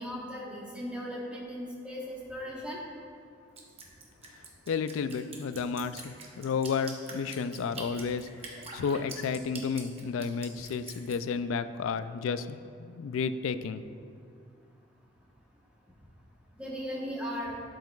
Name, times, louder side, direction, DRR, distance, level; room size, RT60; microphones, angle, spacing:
voice 1, 0.0-2.8 8.6-8.7 16.6-17.6, equal, 5° right, -5 dB, 1.1 m, -37 dB
Drip, 3.6-11.2, right 4 dB, 30° right, 0.8 m, -44 dB
voice 2, 4.7-8.3 8.7-13.8, left 5 dB, 75° left, 12 dB, 0.3 m, -32 dB
11.5 x 6.5 x 2.4 m, 2.4 s
head